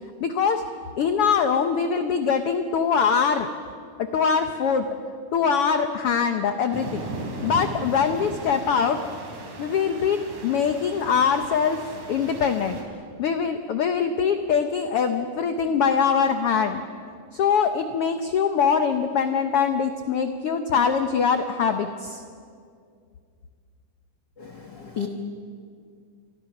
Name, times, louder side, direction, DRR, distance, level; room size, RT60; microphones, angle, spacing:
voice 1, 0.2-0.6 0.9-3.5 4.1-4.9 5.3-7.0 7.4-9.0 9.6-11.8 12.1-12.8 13.2-16.8 17.3-22.2, left 6 dB, 90° left, 7 dB, 1.2 m, -23 dB
sound 1, 6.7-12.8, right 2 dB, 60° right, 4.6 m, -37 dB
voice 2, 24.4-25.1, left 7 dB, 55° left, 4 dB, 1.2 m, -33 dB
29.0 x 24.0 x 6.0 m, 2.2 s
omnidirectional pair, 3.9 m